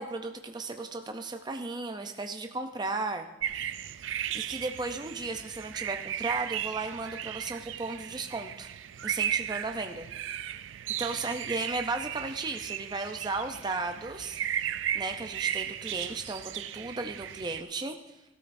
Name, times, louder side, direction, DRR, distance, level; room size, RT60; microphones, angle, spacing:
voice 1, 0.0-3.3 4.3-8.7 9.0-10.1 11.0-14.4 14.9-17.9, right 3 dB, 20° right, 5 dB, 0.5 m, -35 dB
sound 1, 3.4-17.6, right 10 dB, 75° right, 0.4 m, -36 dB
15.5 x 13.0 x 2.6 m, 0.99 s
head